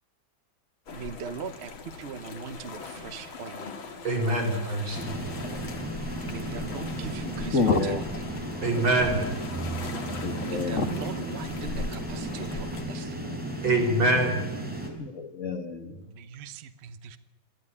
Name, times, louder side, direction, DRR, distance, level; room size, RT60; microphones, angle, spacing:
sound 1, 0.9-12.8, left 4 dB, 85° left, 2.7 m, -40 dB
voice 1, 0.9-3.7 6.2-8.0 10.0-13.4 16.0-17.2, right 6 dB, 45° right, 0.9 m, -40 dB
voice 2, 4.0-5.1 8.6-9.2 13.6-14.4, right 2 dB, 80° right, 5.9 m, -24 dB
sound 2, 4.9-14.9, right 1 dB, 5° right, 4.2 m, -35 dB
voice 3, 7.5-8.1 10.2-10.9 15.0-16.0, left 3 dB, 40° left, 2.0 m, -27 dB
sound 3, 8.9-12.2, right 5 dB, 15° left, 4.0 m, -41 dB
23.0 x 14.5 x 9.8 m
omnidirectional pair, 2.1 m